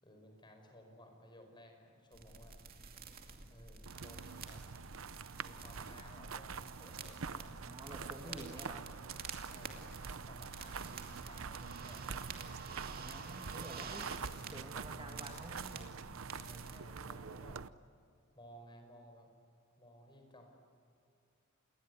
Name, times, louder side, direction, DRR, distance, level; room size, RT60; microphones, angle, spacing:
voice 1, 0.0-2.6 3.5-4.6 5.4-7.6 7.8-8.5 9.3-12.3 13.6-14.0 16.3-17.6 18.3-19.3 19.8-20.6, left 1 dB, 20° left, 4 dB, 5.3 m, -58 dB
sound 1, 2.1-16.8, right 5 dB, 45° right, 2.5 m, -50 dB
sound 2, 3.9-17.7, right 5 dB, 70° right, 0.8 m, -46 dB
voice 2, 7.5-8.9 12.9-14.1 14.5-16.0, right 1 dB, 25° right, 2 dB, 2.5 m, -50 dB
28.0 x 21.0 x 9.5 m, 2.5 s
head